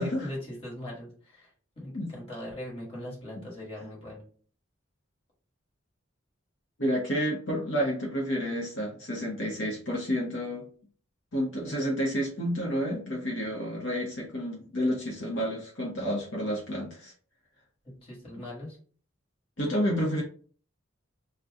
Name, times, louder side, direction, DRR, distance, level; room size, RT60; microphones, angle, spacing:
voice 1, 0.0-1.5 1.7-4.2 17.8-18.8, left 1 dB, 30° left, -5 dB, 1.4 m, -40 dB
voice 2, 6.8-10.7 11.3-17.1 19.6-20.2, equal, 65° left, -2 dB, 0.9 m, -30 dB
2.6 x 2.3 x 3.5 m, 0.43 s
head